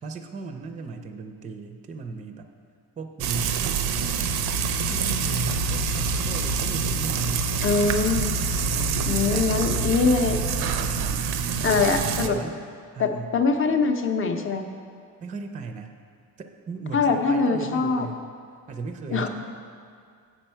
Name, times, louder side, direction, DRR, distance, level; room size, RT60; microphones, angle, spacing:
voice 1, 0.0-2.5 3.0-4.4 4.9-7.5 8.6-9.6 12.3-12.6 12.9-13.4 15.2-15.9 16.4-18.2 18.7-19.3, right 4 dB, 20° right, 6 dB, 0.4 m, -36 dB
Frying (food), 3.2-12.3, right 5 dB, 90° right, 0.5 m, -26 dB
voice 2, 7.6-8.3 9.1-10.4 11.6-12.4 13.0-14.6 16.9-18.1 19.1-19.3, left 4 dB, 35° left, 5 dB, 0.5 m, -23 dB
7.9 x 6.2 x 4.4 m, 2.2 s
cardioid pair, 130°, 37 cm